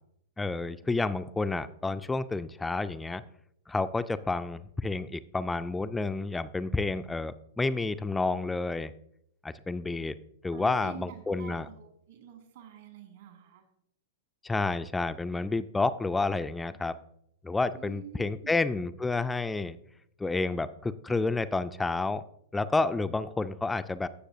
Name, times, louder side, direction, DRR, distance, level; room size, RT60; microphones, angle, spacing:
voice 1, 0.4-3.2 3.7-8.9 9.4-10.1 10.4-11.7 14.4-17.0 17.4-19.8 20.2-22.2 22.5-24.1, left 3 dB, 10° left, 12 dB, 0.3 m, -30 dB
voice 2, 10.5-13.6 17.8-18.6, right 9 dB, 60° right, 5 dB, 1.7 m, -47 dB
16.5 x 6.5 x 2.5 m, 0.72 s
figure-of-eight pair, 100°, 0 cm